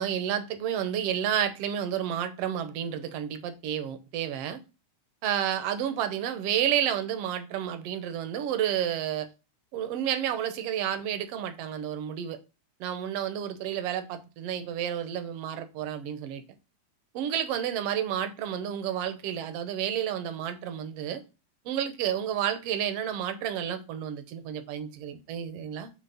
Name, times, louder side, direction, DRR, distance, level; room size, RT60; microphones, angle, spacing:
voice 1, 0.0-4.6 5.2-9.3 9.7-12.4 12.8-16.4 17.1-21.2 21.6-25.9, right 10 dB, 75° right, 1.5 m, -30 dB
7.5 x 3.2 x 5.5 m
omnidirectional pair, 3.5 m